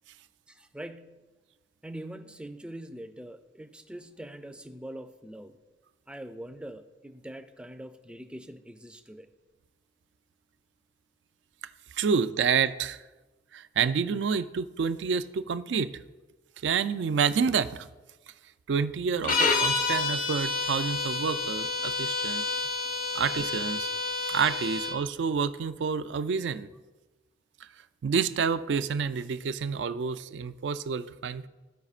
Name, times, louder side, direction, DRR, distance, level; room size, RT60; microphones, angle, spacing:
voice 1, 0.5-1.2 1.8-5.6 6.1-9.3, right 1 dB, 5° right, 7 dB, 0.4 m, -43 dB
voice 2, 11.9-13.0 13.5-16.0 16.6-17.9 18.7-22.4 23.1-23.9 24.3-26.7 28.0-31.5, right 6 dB, 75° right, 13 dB, 0.4 m, -28 dB
sound 1, 19.2-25.0, left 3 dB, 50° left, 0.7 m, -29 dB
14.5 x 4.9 x 2.4 m, 1.2 s
head